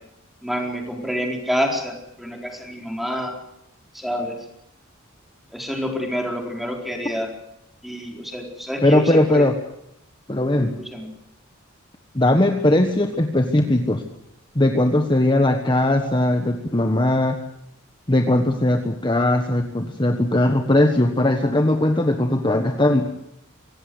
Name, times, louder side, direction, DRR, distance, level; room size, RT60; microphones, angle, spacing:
voice 1, 0.4-3.3 3.9-4.5 5.5-7.3 7.8-9.5 10.5-11.1, equal, ahead, 1 dB, 4.3 m, -28 dB
voice 2, 8.8-9.5 10.3-10.7 12.1-14.0 14.5-17.3 18.1-23.1, left 1 dB, 20° left, 5 dB, 1.4 m, -19 dB
24.5 x 18.0 x 7.9 m, 0.77 s
head